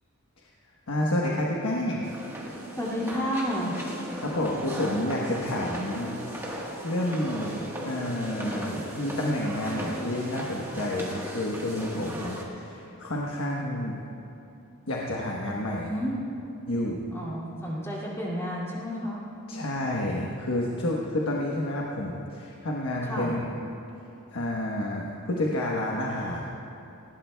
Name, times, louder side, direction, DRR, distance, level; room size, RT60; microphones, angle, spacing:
voice 1, 0.9-2.1 4.2-14.0 14.9-15.9 16.7-17.0 19.5-23.6 24.3-26.4, left 1 dB, 70° left, -2 dB, 1.1 m, -30 dB
sound 1, 2.0-12.4, right 1 dB, 10° right, 1.3 m, -37 dB
voice 2, 2.8-3.8 5.6-5.9 15.9-16.2 17.1-19.2 23.0-23.3, equal, 10° left, -6 dB, 2.4 m, -31 dB
19.5 x 16.5 x 2.3 m, 3.0 s
head